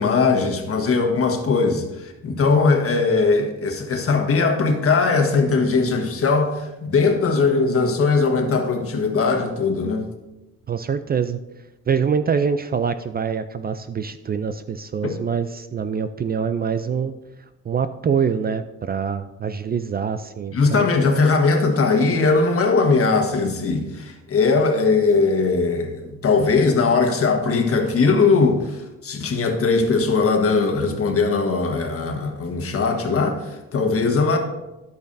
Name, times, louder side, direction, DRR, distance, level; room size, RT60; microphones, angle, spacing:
voice 1, 0.0-10.1 15.0-15.2 20.5-34.4, left 4 dB, 50° left, 1.4 m, -20 dB
voice 2, 10.7-11.4 11.9-17.2 17.6-20.9, right 6 dB, 30° right, 0.4 m, -24 dB
10.5 x 8.5 x 2.6 m
cardioid pair, 90°, 30 cm